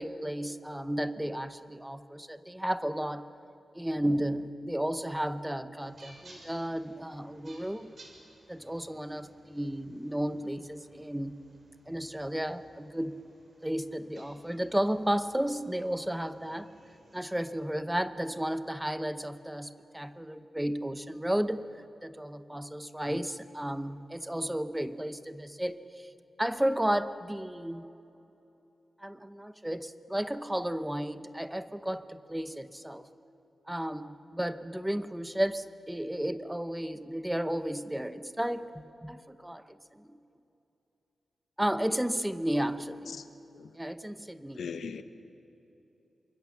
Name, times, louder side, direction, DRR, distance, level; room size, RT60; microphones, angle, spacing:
voice 1, 0.0-3.3 3.7-7.9 8.5-11.4 11.9-13.2 13.6-16.7 17.1-21.6 22.0-26.1 26.4-27.9 29.0-33.1 33.7-40.2 41.6-43.2 43.7-44.6, right 1 dB, 5° right, 11 dB, 0.8 m, -33 dB
sound 1, 5.8-17.6, right 2 dB, 45° right, 4.8 m, -59 dB
voice 2, 44.6-45.0, left 6 dB, 80° left, 10 dB, 1.1 m, -40 dB
27.5 x 23.5 x 7.3 m, 2.9 s
wide cardioid pair, 150°, 0 cm